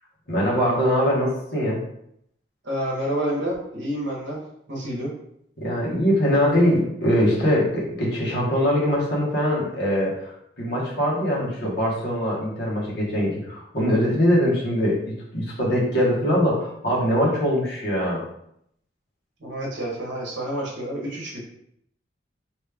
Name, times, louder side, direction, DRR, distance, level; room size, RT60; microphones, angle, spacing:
voice 1, 0.3-1.8 5.6-18.2, equal, 55° left, -5 dB, 1.1 m, -22 dB
voice 2, 2.6-4.4 4.7-5.2 19.4-21.5, right 1 dB, 65° right, -2 dB, 0.9 m, -29 dB
3.0 x 2.3 x 3.3 m, 0.74 s
head